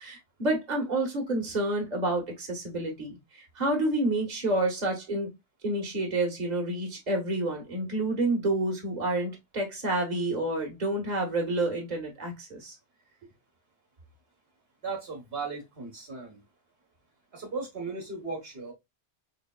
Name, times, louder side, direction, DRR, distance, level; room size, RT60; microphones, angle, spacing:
voice 1, 0.0-5.3 5.6-12.8, right 2 dB, 40° right, 1.4 m, -29 dB
voice 2, 14.8-16.4 17.3-18.7, right 4 dB, 60° right, 1.5 m, -36 dB
3.9 x 3.4 x 2.2 m
omnidirectional pair, 1.2 m